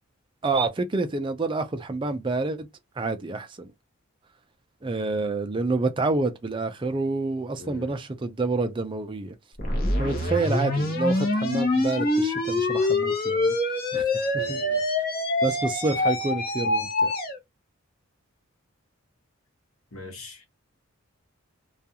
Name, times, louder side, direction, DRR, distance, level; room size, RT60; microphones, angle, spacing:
voice 1, 0.4-2.7 3.0-3.7 4.8-9.3 10.0-14.6 15.4-17.1, right 3 dB, 25° right, 0.4 m, -28 dB
voice 2, 7.6-7.9 14.4-14.8 19.9-20.4, left 2 dB, 75° left, 1.0 m, -41 dB
sound 1, 9.6-17.4, left 2 dB, 45° left, 0.8 m, -25 dB
2.4 x 2.3 x 2.8 m
head